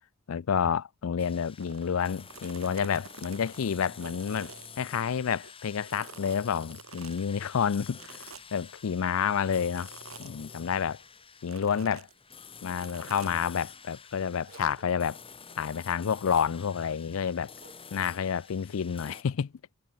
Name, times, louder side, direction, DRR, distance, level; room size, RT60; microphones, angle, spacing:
voice 1, 0.3-9.9 10.2-11.0 11.4-12.1 12.6-15.2 15.6-17.5 17.9-19.5, left 7 dB, 75° left, 0.4 m, -29 dB
sound 1, 1.2-19.2, left 6 dB, 25° left, 3.9 m, -49 dB
sound 2, 1.6-1.9 2.2-5.5 5.8-7.3 7.9-8.7 9.7-10.4 11.4-12.1 12.8-13.4 14.5-14.8, right 5 dB, 80° right, 2.3 m, -48 dB
sound 3, 8.9-19.3, right 3 dB, 40° right, 6.5 m, -64 dB
head